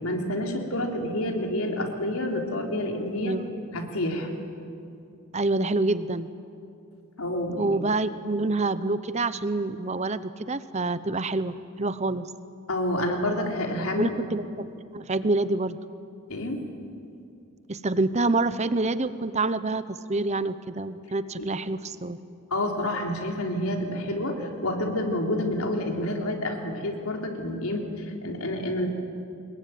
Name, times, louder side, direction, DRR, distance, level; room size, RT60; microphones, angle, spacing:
voice 1, 0.0-3.3 3.7-4.3 7.2-7.7 12.7-14.2 16.3-16.6 21.4-21.5 22.5-28.9, left 1 dB, 80° left, 2 dB, 3.6 m, -28 dB
voice 2, 5.3-6.3 7.6-12.3 14.0-14.6 14.9-15.8 17.7-22.2, right 2 dB, 30° right, 14 dB, 0.9 m, -27 dB
25.0 x 21.0 x 9.5 m, 2.6 s
head